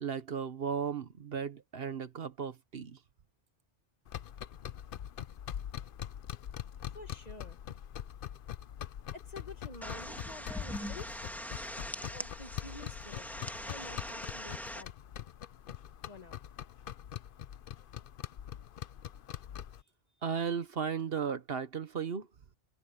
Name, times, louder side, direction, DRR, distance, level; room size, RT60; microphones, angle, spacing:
voice 1, 0.0-3.0 20.2-22.3, right 7 dB, 55° right, 1.1 m, -35 dB
sound 1, 4.1-19.8, left 10 dB, 55° left, 0.7 m, -43 dB
voice 2, 6.9-7.6 9.1-11.3 12.0-13.3 13.6-14.9 16.1-16.3, left 2 dB, 35° left, 1.5 m, -49 dB
sound 2, 9.8-14.8, equal, ahead, 1.6 m, -42 dB
omnidirectional pair, 1.2 m